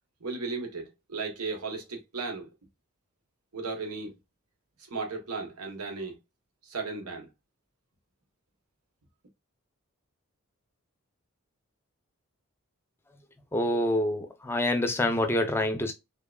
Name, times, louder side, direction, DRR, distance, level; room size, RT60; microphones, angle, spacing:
voice 1, 0.2-2.5 3.5-4.1 4.9-6.1 6.7-7.3, right 4 dB, 85° right, 1.1 m, -35 dB
voice 2, 13.5-15.9, left 1 dB, 10° left, 0.5 m, -26 dB
3.6 x 3.5 x 2.2 m
head